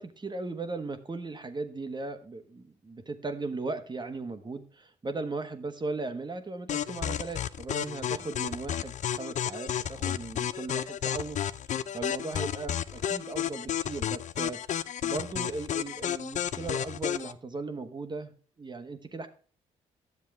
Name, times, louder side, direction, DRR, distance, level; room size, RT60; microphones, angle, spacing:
voice 1, 0.0-19.3, right 3 dB, 30° right, 8 dB, 1.4 m, -37 dB
sound 1, 6.7-17.3, left 9 dB, 50° left, 0.5 m, -32 dB
11.0 x 7.3 x 3.5 m, 0.40 s
hypercardioid pair, 50°, 16 cm